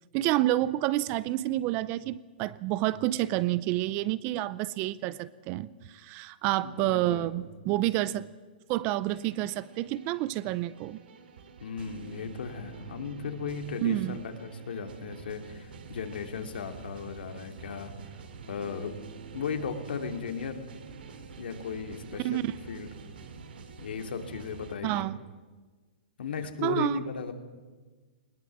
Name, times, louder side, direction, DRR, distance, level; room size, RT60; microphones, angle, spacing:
voice 1, 0.1-8.3 8.7-11.0 13.8-14.2 22.1-22.5 24.8-25.2 26.6-27.0, right 16 dB, 30° right, 19 dB, 0.6 m, -29 dB
voice 2, 6.6-7.5 11.6-17.9 18.5-18.9 19.3-20.6 21.4-22.9 23.8-25.1 26.2-27.3, left 6 dB, 80° left, 5 dB, 2.7 m, -36 dB
sound 1, 9.0-24.8, right 5 dB, 75° right, 3.1 m, -47 dB
20.5 x 19.5 x 7.6 m, 1.4 s
hypercardioid pair, 155°, 5 cm